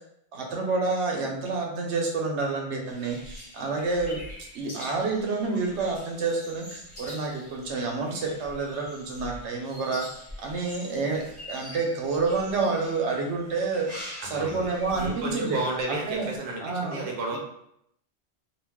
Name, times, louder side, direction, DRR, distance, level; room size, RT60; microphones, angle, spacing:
voice 1, 0.3-4.2 4.5-10.1 10.4-11.2 11.5-15.6 15.9-16.2 16.6-17.0 17.3-17.4, right 3 dB, 85° right, 0 dB, 0.9 m, -28 dB
sound 1, 2.8-16.5, equal, 25° left, 0.8 m, -45 dB
voice 2, 14.2-14.7 15.0-17.4, right 2 dB, 60° right, 0 dB, 0.7 m, -32 dB
2.4 x 2.3 x 3.4 m, 0.75 s
omnidirectional pair, 1.1 m